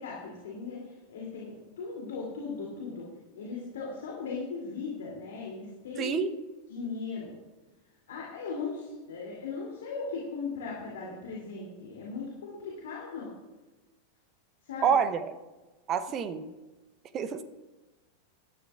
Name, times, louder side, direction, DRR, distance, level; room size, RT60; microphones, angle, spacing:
voice 1, 0.0-3.1 3.3-6.2 6.7-7.3 8.1-13.3 14.6-14.9, left 4 dB, 60° left, -3 dB, 2.8 m, -38 dB
voice 2, 6.0-6.3 14.8-15.3 15.9-16.5 17.1-17.4, right 7 dB, 30° right, 12 dB, 0.8 m, -27 dB
18.5 x 12.0 x 2.5 m, 1.2 s
figure-of-eight pair, 90°, 0 cm